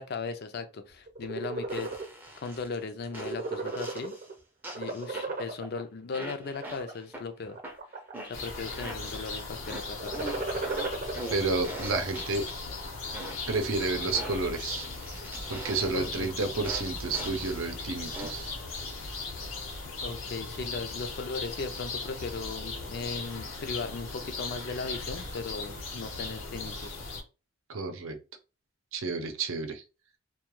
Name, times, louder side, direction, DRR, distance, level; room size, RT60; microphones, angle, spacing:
voice 1, 0.0-1.9 2.4-4.2 4.7-7.6 8.3-10.5 15.9-16.3 20.0-27.0, left 4 dB, 50° left, 0.4 m, -37 dB
sound 1, 1.1-2.0 2.5-2.7 3.0-4.3 4.7-5.8 6.4-6.9 7.5-8.2 8.5-9.0 9.9-11.2, right 3 dB, 45° right, 0.7 m, -34 dB
sound 2, 1.7-2.7 3.1-4.3 4.6-5.6 6.1-7.2 7.6-9.3 9.6-12.7 13.1-13.6 14.1-16.1 16.6-17.6 18.1-18.6, right 1 dB, 10° right, 0.5 m, -42 dB
sound 3, 8.3-27.2, left 3 dB, 80° left, 0.8 m, -38 dB
voice 2, 11.3-12.5 13.5-14.9 15.5-18.5 27.7-28.2 28.9-29.8, right 3 dB, 80° right, 0.6 m, -30 dB
2.3 x 2.2 x 3.0 m
head